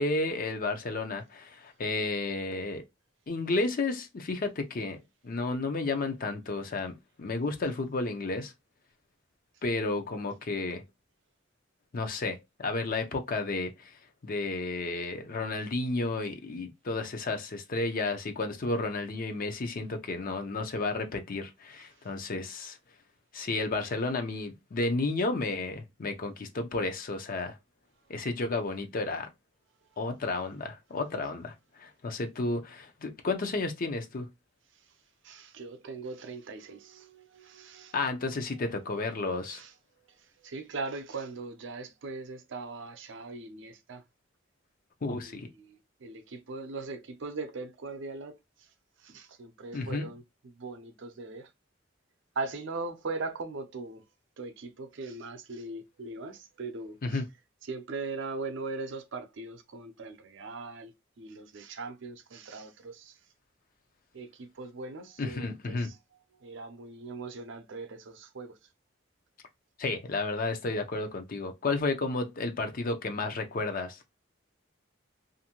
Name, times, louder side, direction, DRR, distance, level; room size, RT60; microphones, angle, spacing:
voice 1, 0.0-2.8 3.3-5.0 5.2-6.9 7.2-8.5 9.6-10.8 11.9-13.7 14.2-22.8 23.3-27.6 28.1-29.3 30.0-34.3 37.9-39.6 45.0-45.5 49.7-50.1 57.0-57.2 65.2-65.9 69.8-74.1, left 3 dB, 45° left, 0.5 m, -32 dB
voice 2, 35.2-38.3 39.5-39.8 40.4-44.0 45.2-48.4 49.0-51.5 52.4-54.0 54.4-57.2 57.6-63.1 64.1-68.6, right 3 dB, 70° right, 0.5 m, -40 dB
2.6 x 2.5 x 2.8 m
head